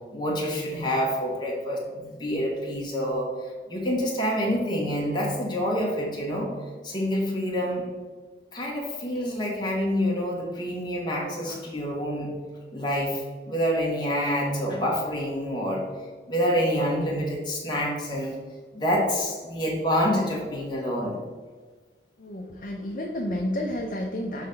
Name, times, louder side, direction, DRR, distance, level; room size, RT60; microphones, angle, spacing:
voice 1, 0.1-6.6 6.8-7.9 8.5-12.3 12.7-15.8 16.3-18.4 18.7-21.2, equal, 25° left, -3 dB, 1.3 m, -27 dB
voice 2, 22.2-24.5, left 1 dB, 45° left, 1 dB, 0.6 m, -31 dB
5.6 x 4.1 x 5.2 m, 1.4 s
head